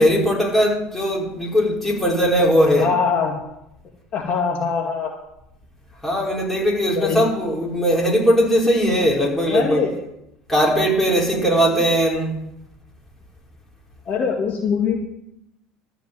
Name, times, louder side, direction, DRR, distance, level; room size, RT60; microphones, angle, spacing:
voice 1, 0.0-2.9 6.0-9.9 10.5-12.4, equal, 5° left, -4 dB, 5.3 m, -19 dB
voice 2, 2.8-3.3 4.1-5.1 7.0-7.2 9.5-9.9 14.1-15.0, left 6 dB, 50° left, 0 dB, 2.2 m, -22 dB
14.0 x 5.2 x 9.4 m, 0.83 s
supercardioid pair, 95°, 3 cm